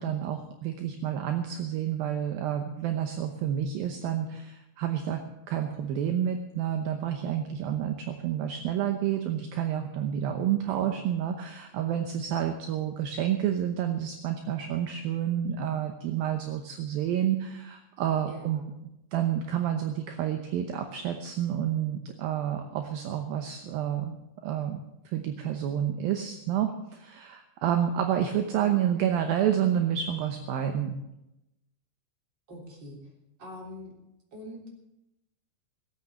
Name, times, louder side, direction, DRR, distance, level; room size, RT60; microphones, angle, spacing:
voice 1, 0.0-5.2 5.5-18.6 19.1-31.0, right 10 dB, 75° right, 5 dB, 2.2 m, -29 dB
voice 2, 10.7-11.0 18.3-18.7 28.6-28.9 32.5-33.0 33.4-33.9 34.3-34.7, equal, 25° right, -1 dB, 3.5 m, -43 dB
19.0 x 8.5 x 7.2 m, 0.90 s
omnidirectional pair, 5.3 m